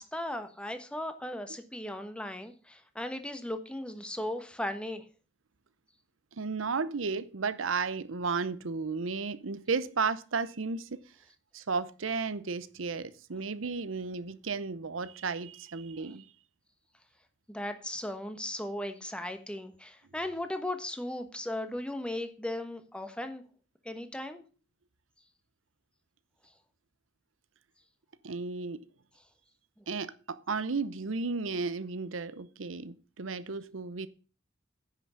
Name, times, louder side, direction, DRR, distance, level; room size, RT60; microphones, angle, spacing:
voice 1, 0.0-5.0 17.5-23.4 23.8-24.4 29.8-29.9, left 1 dB, 5° left, 1.2 m, -37 dB
voice 2, 6.3-11.0 11.5-16.3 28.2-28.9 29.9-34.1, right 4 dB, 80° right, 0.8 m, -33 dB
10.0 x 6.0 x 6.9 m
head